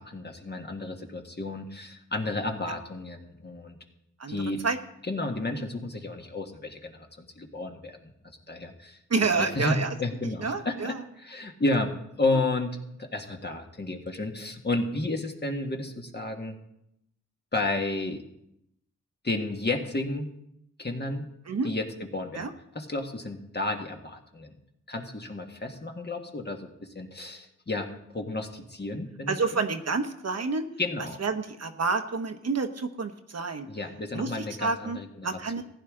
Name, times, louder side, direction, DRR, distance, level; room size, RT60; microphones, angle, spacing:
voice 1, 0.0-3.8 4.3-4.6 5.1-8.0 8.5-9.0 9.4-11.9 12.2-16.6 17.5-18.2 19.2-20.3 20.8-21.3 21.6-24.5 24.9-26.7 27.0-27.9 28.1-29.6 30.8-31.2 33.7-35.3 35.6-35.7, left 2 dB, 35° left, 3 dB, 1.7 m, -32 dB
voice 2, 4.2-4.8 9.1-9.9 10.4-11.0 21.5-21.7 22.3-22.5 29.3-30.7 31.2-33.7 34.1-35.0 35.2-35.6, right 4 dB, 55° right, 7 dB, 1.0 m, -29 dB
15.5 x 10.0 x 3.8 m, 0.80 s
cardioid pair, 60°, 31 cm